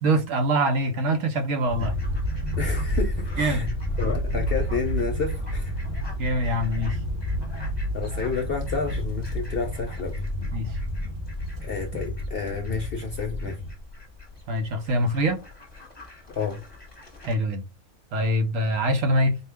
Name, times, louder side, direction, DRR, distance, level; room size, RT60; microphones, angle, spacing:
voice 1, 0.0-1.9 3.4-3.7 6.2-7.0 10.5-10.8 14.5-15.4 17.2-17.6 18.1-19.4, right 1 dB, 65° right, 1.0 m, -24 dB
Fowl, 1.6-17.3, left 2 dB, 15° left, 1.3 m, -47 dB
sound 1, 1.7-13.7, equal, 30° right, 0.6 m, -29 dB
voice 2, 2.5-3.7 4.0-5.7 6.4-6.6 7.9-10.2 11.6-13.6 16.3-16.6, left 5 dB, 60° left, 0.6 m, -30 dB
4.3 x 2.3 x 3.4 m
omnidirectional pair, 1.6 m